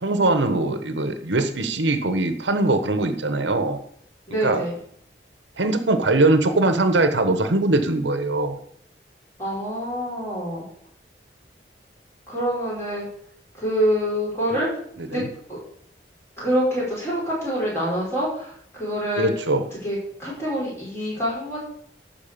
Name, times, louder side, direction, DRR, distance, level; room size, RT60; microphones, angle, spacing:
voice 1, 0.0-3.8 4.4-4.6 5.6-8.6 15.1-15.3 19.2-19.6, right 2 dB, 85° right, 9 dB, 1.1 m, -21 dB
voice 2, 4.3-4.8 9.4-10.6 12.3-13.1 13.6-14.7 15.1-15.2 15.5-15.6 16.4-19.3 19.7-21.6, equal, 15° left, -6 dB, 5.7 m, -26 dB
12.0 x 4.7 x 7.5 m, 0.65 s
head